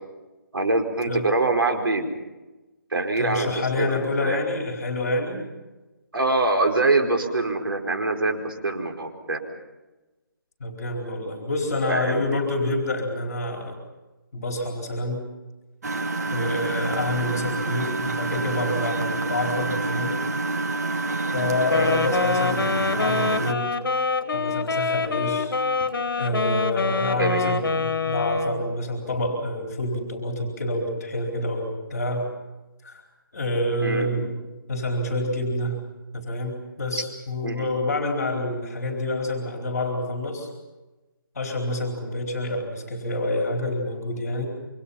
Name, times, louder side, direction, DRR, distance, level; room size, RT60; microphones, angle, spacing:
voice 1, 0.5-2.1 2.9-4.4 6.1-9.4 11.9-12.4 21.7-22.0 27.2-27.5 33.8-34.1 37.4-37.7, right 2 dB, 85° right, 3 dB, 4.8 m, -24 dB
voice 2, 3.2-5.4 10.6-13.8 14.3-15.2 16.3-20.2 21.3-23.7 24.3-25.5 26.2-32.3 32.8-33.0 33.3-34.3 34.7-35.8 36.1-40.5 41.3-44.5, left 1 dB, 45° left, 1 dB, 4.4 m, -27 dB
Engine, 15.8-23.5, right 3 dB, 45° right, 1.4 m, -28 dB
Wind instrument woodwind instrument, 21.6-28.8, left 4 dB, 75° left, 1.9 m, -25 dB
28.0 x 25.0 x 5.7 m, 1.1 s
hypercardioid pair, 175°, 12 cm